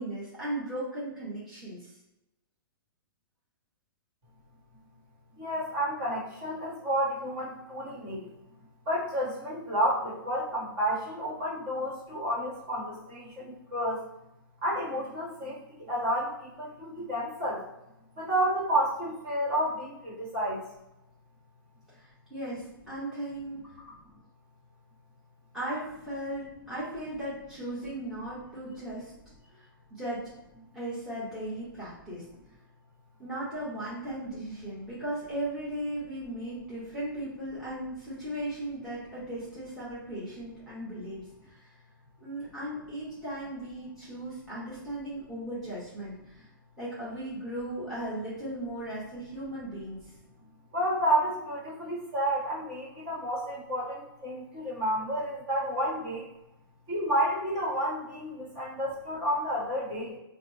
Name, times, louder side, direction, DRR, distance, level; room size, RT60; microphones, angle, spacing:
voice 1, 0.0-2.0 21.9-23.7 25.5-29.1 29.5-30.2 30.7-32.3 33.2-41.7 42.2-46.5 46.8-50.1, right 1 dB, ahead, -12 dB, 1.0 m, -37 dB
voice 2, 5.4-8.3 8.8-14.0 14.6-17.6 18.2-20.7 50.7-56.3 56.9-60.2, right 1 dB, 35° right, -5 dB, 1.3 m, -30 dB
4.1 x 2.1 x 3.1 m, 0.91 s
hypercardioid pair, 150°, 12 cm